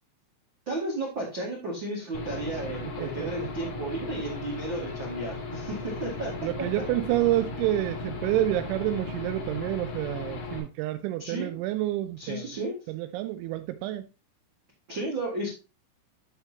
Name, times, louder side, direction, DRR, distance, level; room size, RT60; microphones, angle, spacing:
voice 1, 0.6-6.3 11.2-11.6 12.2-12.8 14.9-15.5, right 2 dB, 65° right, 1.1 m, -33 dB
Aircraft / Engine, 2.1-10.6, left 3 dB, 55° left, 2.2 m, -36 dB
voice 2, 6.4-12.5 12.9-14.0, right 15 dB, 90° right, 2.7 m, -28 dB
10.5 x 5.8 x 2.8 m
omnidirectional pair, 5.9 m